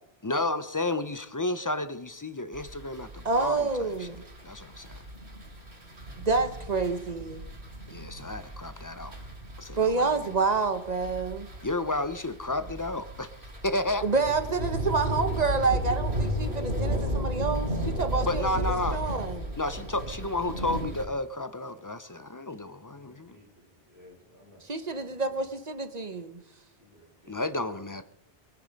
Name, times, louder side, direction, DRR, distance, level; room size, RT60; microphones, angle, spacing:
voice 1, 0.2-4.1 4.4-5.0 7.9-9.2 9.6-10.1 11.6-13.3 13.6-14.1 18.2-19.0 19.6-23.4 27.3-28.0, left 2 dB, 25° left, 0.5 m, -32 dB
sound 1, 2.5-21.0, equal, 85° right, 3.7 m, -34 dB
voice 2, 3.2-4.2 6.2-7.4 9.8-11.5 14.0-18.5 18.9-19.5 24.6-26.4, right 4 dB, 40° right, 1.1 m, -28 dB
voice 3, 22.9-23.5 23.9-25.4 26.8-28.0, left 1 dB, 15° right, 5.1 m, -57 dB
22.5 x 9.6 x 5.2 m
omnidirectional pair, 1.1 m